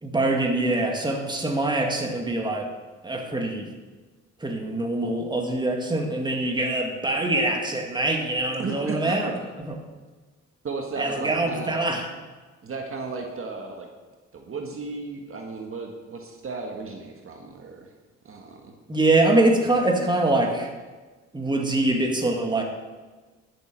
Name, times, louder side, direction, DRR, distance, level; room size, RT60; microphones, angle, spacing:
voice 1, 0.0-2.7 3.0-3.7 4.4-9.3 9.6-9.8 11.0-12.1 18.9-20.7 21.3-22.6, right 2 dB, 15° right, 1 dB, 2.1 m, -24 dB
voice 2, 8.6-9.2 10.6-11.8 12.6-13.9 14.3-17.9 18.2-18.8, right 4 dB, 45° right, 2 dB, 1.6 m, -34 dB
11.5 x 7.9 x 6.2 m, 1.3 s
cardioid pair, 90°, 30 cm